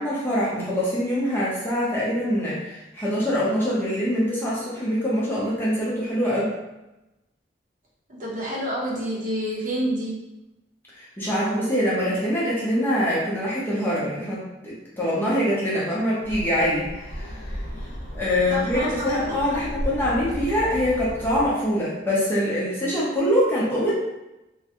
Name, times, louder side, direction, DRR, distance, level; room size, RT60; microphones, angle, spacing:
voice 1, 0.0-6.5 10.9-17.6 18.1-23.9, equal, 10° left, -8 dB, 0.7 m, -24 dB
voice 2, 8.1-10.2 18.5-19.6, equal, 45° right, -6 dB, 0.9 m, -29 dB
sound 1, 16.2-21.5, equal, 80° left, 0.8 m, -34 dB
3.1 x 2.2 x 2.9 m, 0.97 s
head